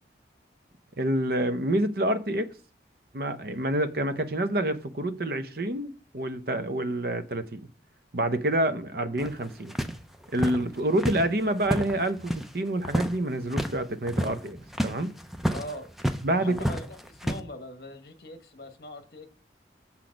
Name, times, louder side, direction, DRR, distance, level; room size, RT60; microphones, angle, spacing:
voice 1, 1.0-2.5 3.1-7.6 8.1-9.7 10.3-14.6 14.8-15.1 16.2-16.7, right 1 dB, 55° right, 0.7 m, -27 dB
sound 1, 9.2-12.5 12.8-13.2 13.4-13.8 14.1-16.3 16.5-17.4, equal, ahead, 0.5 m, -30 dB
voice 2, 15.5-15.9 16.3-19.3, left 1 dB, 55° left, 1.1 m, -41 dB
7.3 x 6.0 x 5.1 m
head